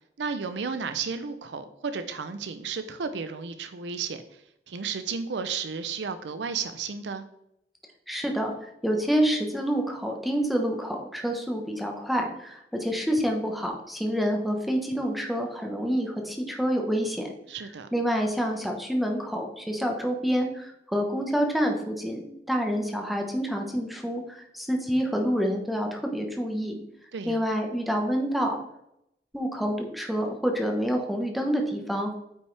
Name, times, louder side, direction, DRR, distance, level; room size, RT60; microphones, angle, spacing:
voice 1, 0.2-4.2 4.7-7.2 17.5-17.9 27.1-27.4, right 5 dB, 75° right, 10 dB, 0.5 m, -33 dB
voice 2, 8.1-8.5 8.8-17.3 17.9-26.7 27.3-28.6 29.3-32.2, equal, ahead, 2 dB, 1.1 m, -27 dB
9.0 x 5.6 x 3.3 m, 0.79 s
head